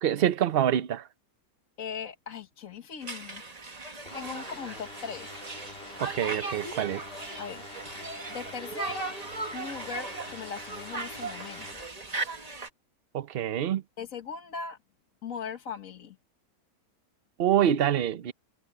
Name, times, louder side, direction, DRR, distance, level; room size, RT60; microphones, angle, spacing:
voice 1, 0.0-1.1 6.0-7.0 13.1-13.8 17.4-18.3, right 10 dB, 50° right, 0.8 m, -26 dB
voice 2, 1.8-3.4 4.1-5.4 7.4-7.6 8.3-9.2 9.5-11.9 14.0-14.8 15.2-16.2, left 6 dB, 65° left, 1.7 m, -39 dB
Conversation, 3.0-12.7, right 3 dB, 25° right, 1.4 m, -38 dB
sound 1, 4.1-11.7, left 3 dB, 45° left, 2.8 m, -46 dB
omnidirectional pair, 1.6 m